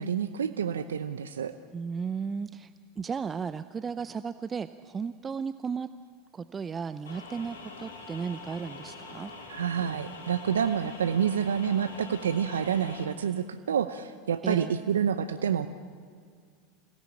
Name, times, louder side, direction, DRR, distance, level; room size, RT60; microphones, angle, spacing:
voice 1, 0.0-1.5 9.5-15.7, right 8 dB, 80° right, 11 dB, 0.7 m, -28 dB
voice 2, 1.7-5.9 6.3-9.3 14.4-14.8, right 6 dB, 25° right, 13 dB, 0.7 m, -35 dB
sound 1, 7.1-13.1, left 3 dB, 75° left, 3.9 m, -44 dB
27.0 x 17.5 x 8.6 m, 2.1 s
hypercardioid pair, 85°, 0 cm